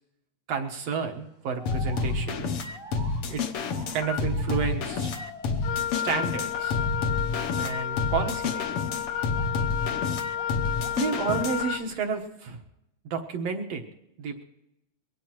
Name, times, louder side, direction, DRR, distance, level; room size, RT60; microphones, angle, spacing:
voice 1, 0.5-2.5 3.3-3.4 3.9-5.1 5.9-6.8 7.6-8.7 11.0-12.6 13.1-13.8 14.2-14.4, right 6 dB, 65° right, 4 dB, 2.4 m, -31 dB
sound 1, 0.6-0.9 1.5-5.9 6.2-6.9 7.4-7.6 8.4-10.1 10.3-11.1, equal, 15° right, 1.0 m, -47 dB
sound 2, 1.7-11.8, left 4 dB, 65° left, 1.7 m, -29 dB
Wind instrument woodwind instrument, 5.6-11.9, left 9 dB, 80° left, 2.0 m, -32 dB
22.5 x 18.0 x 3.1 m, 0.87 s
omnidirectional pair, 3.3 m